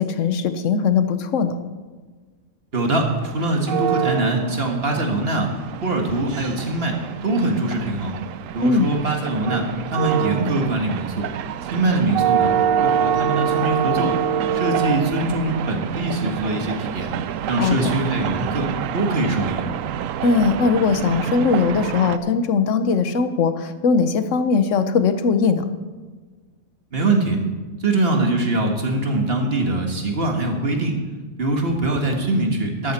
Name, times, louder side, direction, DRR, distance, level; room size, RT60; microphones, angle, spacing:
voice 1, 0.0-1.5 8.6-8.9 17.6-17.9 20.2-25.6, left 5 dB, 60° left, 10 dB, 1.2 m, -20 dB
voice 2, 2.7-5.5 5.8-7.0 7.2-8.1 8.5-11.3 11.6-12.5 12.8-14.2 14.5-17.1 17.5-19.6 26.9-27.4 27.8-31.0 31.4-32.9, right 2 dB, 40° right, 2 dB, 1.8 m, -23 dB
sound 1, 2.8-22.2, right 9 dB, 70° right, 0.9 m, -26 dB
13.0 x 12.0 x 4.3 m, 1.4 s
omnidirectional pair, 1.6 m